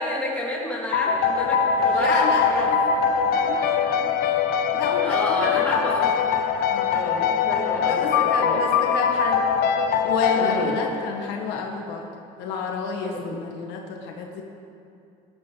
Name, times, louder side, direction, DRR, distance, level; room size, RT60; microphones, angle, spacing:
voice 1, 0.0-2.7 5.0-6.1 6.9-8.0 8.4-8.8 10.4-10.8 13.1-13.4, left 1 dB, 10° left, -5 dB, 2.8 m, -29 dB
sound 1, 0.9-11.3, left 6 dB, 65° left, 0.8 m, -22 dB
voice 2, 1.9-4.1 4.7-5.8 6.7-7.0 7.9-9.4 10.0-12.1 12.4-14.4, left 4 dB, 80° left, 1 dB, 1.7 m, -30 dB
17.5 x 11.0 x 4.0 m, 2.6 s
cardioid pair, 115°, 17 cm